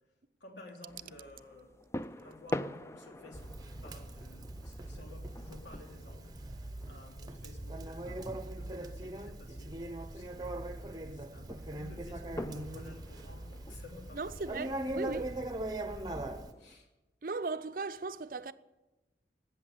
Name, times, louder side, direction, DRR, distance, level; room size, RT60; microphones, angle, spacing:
voice 1, 0.4-1.9 2.2-14.5 14.9-16.9, left 2 dB, 90° left, 3.2 m, -54 dB
sound 1, 0.9-16.7, left 1 dB, 15° left, 0.4 m, -46 dB
Conversation, 3.3-16.5, right 1 dB, 20° right, 0.8 m, -41 dB
voice 2, 14.1-15.3 17.2-18.5, right 3 dB, 50° right, 0.5 m, -37 dB
13.0 x 8.7 x 9.5 m
head